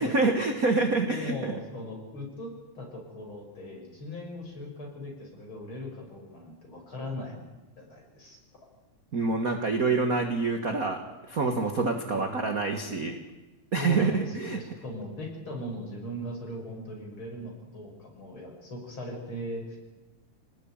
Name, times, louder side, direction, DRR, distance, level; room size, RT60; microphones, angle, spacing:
voice 1, 0.0-1.5 9.1-13.2 13.7-14.6, right 3 dB, 40° right, 5 dB, 1.3 m, -27 dB
voice 2, 1.1-7.5 7.8-8.4 12.0-12.4 13.8-19.8, left 1 dB, 35° left, 1 dB, 6.2 m, -39 dB
25.5 x 19.5 x 9.0 m, 1.1 s
omnidirectional pair, 3.8 m